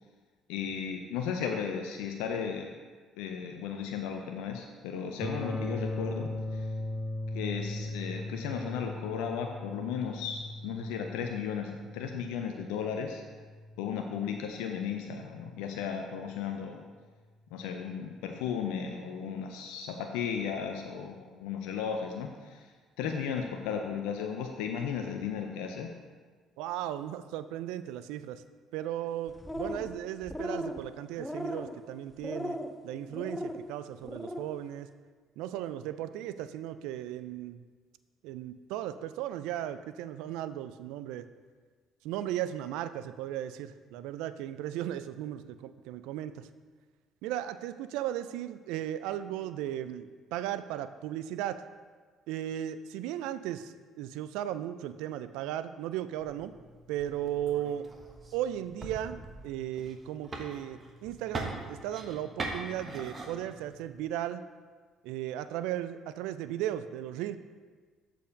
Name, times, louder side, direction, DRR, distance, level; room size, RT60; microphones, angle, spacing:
voice 1, 0.5-2.7 3.2-6.7 7.3-13.2 13.8-16.8 17.5-22.7 23.0-25.9, left 7 dB, 80° left, 4 dB, 0.5 m, -35 dB
sound 1, 5.2-15.1, left 1 dB, 10° right, 2.3 m, -39 dB
voice 2, 26.6-28.4 28.7-32.6 32.8-34.9 35.4-37.6 38.2-41.3 42.0-46.5 47.2-51.6 52.3-56.5 56.9-57.9 58.3-64.4 65.0-67.4, right 12 dB, 75° right, 12 dB, 0.3 m, -36 dB
sound 2, 29.3-29.9 30.2-30.8 31.2-31.7 32.2-32.7 33.1-33.6 34.0-34.5, left 1 dB, 10° left, 0.7 m, -37 dB
sound 3, 56.2-64.1, right 2 dB, 35° right, 1.1 m, -43 dB
7.0 x 4.6 x 5.1 m, 1.5 s
hypercardioid pair, 60°, 0 cm